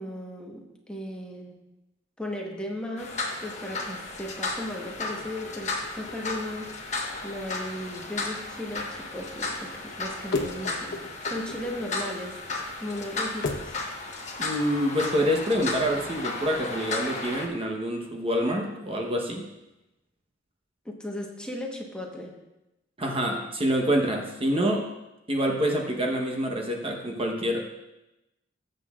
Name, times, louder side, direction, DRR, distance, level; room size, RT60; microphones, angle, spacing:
voice 1, 0.0-1.6 2.2-12.4 12.8-13.8 20.8-22.4, left 1 dB, 5° left, 0 dB, 1.2 m, -36 dB
sound 1, 3.0-17.5, left 3 dB, 40° left, 1.3 m, -34 dB
sound 2, 5.0-13.8, left 3 dB, 60° left, 1.0 m, -39 dB
voice 2, 14.4-19.4 23.0-24.9 25.3-27.6, equal, 30° right, 1 dB, 1.0 m, -26 dB
19.0 x 7.7 x 2.4 m, 0.96 s
head